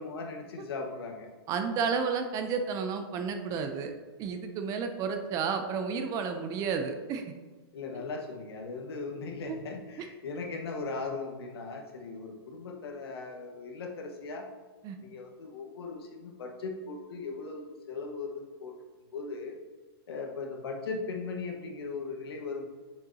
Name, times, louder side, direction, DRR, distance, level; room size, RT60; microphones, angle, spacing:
voice 1, 0.0-1.3 7.7-14.5 15.0-18.7 19.1-19.6 20.1-22.7, left 4 dB, 75° left, 2 dB, 1.2 m, -38 dB
voice 2, 1.5-3.9 4.2-7.3 9.5-9.6 10.0-10.1 14.8-15.0, right 5 dB, 25° right, 7 dB, 0.5 m, -31 dB
6.8 x 6.3 x 2.7 m, 1.4 s
hypercardioid pair, 140°, 13 cm